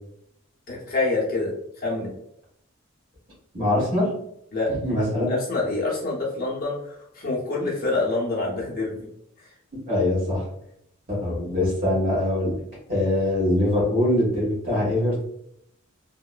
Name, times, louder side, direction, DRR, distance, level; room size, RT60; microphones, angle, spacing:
voice 1, 0.7-1.5 1.8-2.1 4.5-4.7 5.3-9.1 9.4-9.5, left 2 dB, 40° left, -4 dB, 0.7 m, -26 dB
voice 2, 3.5-4.1 4.7-5.3 9.9-10.4 11.1-12.5 12.9-15.2, left 1 dB, 40° right, -5 dB, 1.4 m, -23 dB
2.9 x 2.0 x 2.3 m, 0.73 s
head